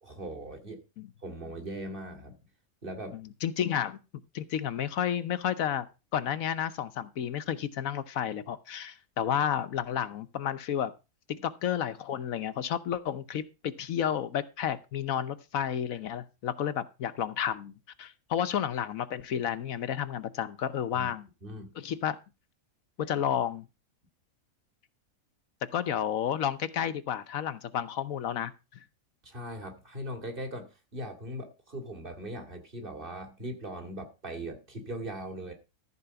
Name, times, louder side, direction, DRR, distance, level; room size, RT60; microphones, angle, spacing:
voice 1, 0.0-0.8 1.2-2.4 2.8-3.2 20.9-21.1 21.4-21.7 29.2-35.5, right 1 dB, 40° right, 5 dB, 2.4 m, -40 dB
voice 2, 3.1-4.0 4.3-5.9 6.1-10.9 11.4-17.7 18.0-21.3 21.8-22.2 23.0-23.7 25.7-28.8, left 9 dB, 70° left, 13 dB, 1.2 m, -31 dB
14.0 x 4.7 x 6.9 m, 0.29 s
omnidirectional pair, 1.5 m